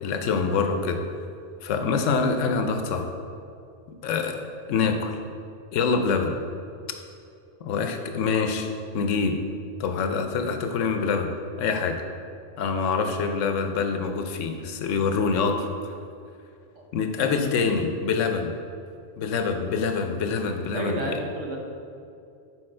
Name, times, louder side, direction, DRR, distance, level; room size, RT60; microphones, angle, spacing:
voice 1, 0.0-1.0 1.6-3.1 4.0-5.1 5.7-6.4 7.6-8.7 8.9-9.3 9.8-11.3 11.6-12.0 12.6-15.7 16.9-18.5 19.2-21.2, left 5 dB, 85° left, 6 dB, 1.0 m, -25 dB
voice 2, 20.7-21.6, right 2 dB, 80° right, 0 dB, 1.3 m, -31 dB
6.5 x 4.2 x 4.3 m, 2.5 s
omnidirectional pair, 1.3 m